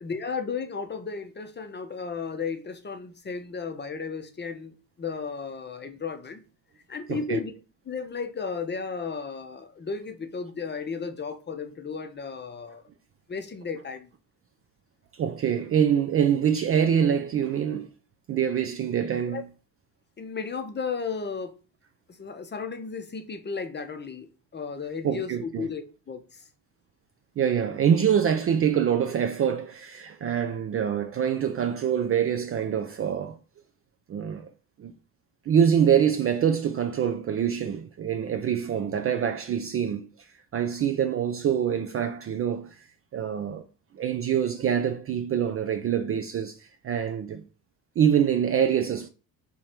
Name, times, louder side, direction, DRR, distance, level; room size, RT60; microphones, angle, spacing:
voice 1, 0.0-6.4 6.9-7.5 7.9-12.8 13.3-14.1 19.3-19.4 20.2-21.5 22.1-26.5, left 5 dB, 20° left, 0.8 m, -34 dB
voice 2, 7.1-7.4 15.1-17.9 18.3-19.4 25.0-25.7 27.4-33.4 34.1-34.5 34.8-34.9 35.5-40.3 40.5-42.8 43.1-43.7 43.9-47.4 48.0-49.1, right 8 dB, 30° right, 0.4 m, -25 dB
3.8 x 3.1 x 4.4 m
hypercardioid pair, 60°, 49 cm